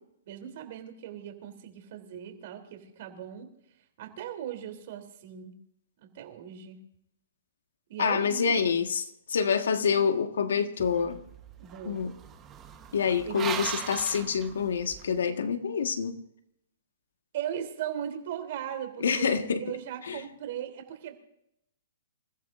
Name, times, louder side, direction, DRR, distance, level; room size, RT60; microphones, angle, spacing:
voice 1, 0.3-3.5 4.0-5.6 6.0-6.8 7.9-8.9 11.6-12.0 13.2-13.5 17.3-19.3 19.6-21.1, right 10 dB, 45° right, 3.4 m, -38 dB
voice 2, 8.0-11.2 11.8-12.2 12.9-16.2 19.0-19.6 20.1-20.2, left 6 dB, 85° left, 1.7 m, -27 dB
sound 1, 10.8-15.1, right 8 dB, 20° right, 1.2 m, -39 dB
28.0 x 15.0 x 2.6 m
hypercardioid pair, 160°, 0 cm